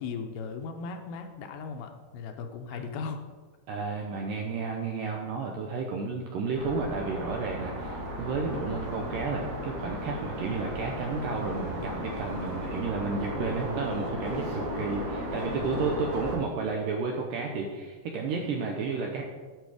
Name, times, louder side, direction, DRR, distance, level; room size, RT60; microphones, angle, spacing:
voice 1, 0.0-3.2, left 5 dB, 80° left, 6 dB, 2.5 m, -37 dB
voice 2, 3.7-19.3, right 4 dB, 80° right, 1 dB, 2.0 m, -32 dB
sound 1, 6.5-16.4, equal, 45° right, 2.6 m, -35 dB
9.2 x 6.5 x 4.9 m, 1.4 s
omnidirectional pair, 4.7 m